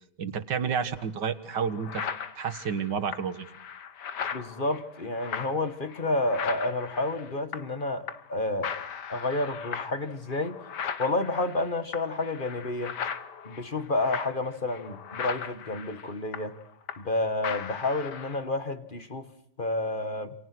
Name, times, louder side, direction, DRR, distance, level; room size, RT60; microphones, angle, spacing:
voice 1, 0.2-2.0 2.4-3.4, right 6 dB, 70° right, 10 dB, 2.2 m, -30 dB
sound 1, 1.0-1.1 1.5-7.8 8.1-8.4 8.6-17.2 17.4-18.5, left 7 dB, 70° left, 2.0 m, -38 dB
voice 2, 4.3-8.8 9.1-10.6 11.0-12.9 13.5-16.6 17.0-19.3 19.6-20.3, left 2 dB, 30° left, 10 dB, 1.9 m, -30 dB
28.5 x 28.0 x 6.2 m, 0.67 s
omnidirectional pair, 1.9 m